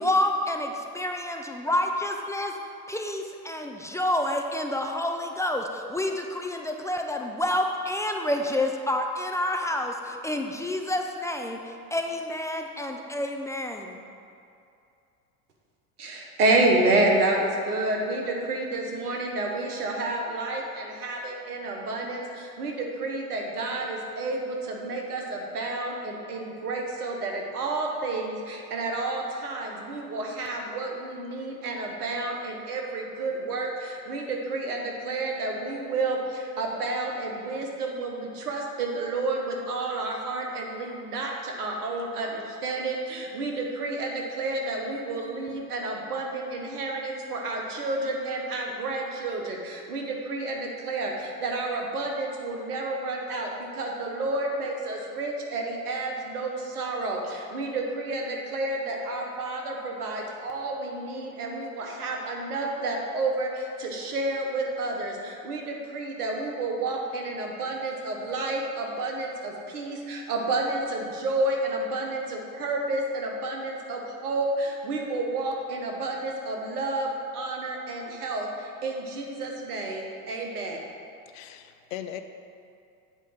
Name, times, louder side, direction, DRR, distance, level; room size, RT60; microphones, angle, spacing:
voice 1, 0.0-2.5 2.9-11.6 11.9-14.0, left 1 dB, 5° left, 3 dB, 0.5 m, -28 dB
voice 2, 16.0-80.8, right 2 dB, 85° right, 1 dB, 1.4 m, -30 dB
voice 3, 81.3-82.2, left 12 dB, 65° left, 8 dB, 0.8 m, -38 dB
8.1 x 4.8 x 5.8 m, 2.5 s
hypercardioid pair, 90°, 44 cm